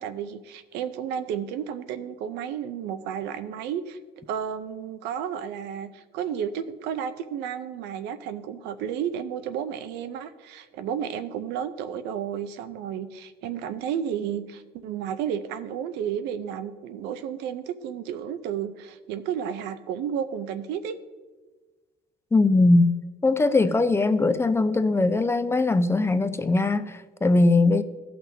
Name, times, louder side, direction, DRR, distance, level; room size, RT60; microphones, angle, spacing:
voice 1, 0.0-4.0 4.3-21.0, right 8 dB, 90° right, 0.6 m, -32 dB
voice 2, 22.3-22.9 23.2-27.8, left 2 dB, 15° left, 0.4 m, -20 dB
16.5 x 6.0 x 2.7 m
cardioid pair, 110°, 17 cm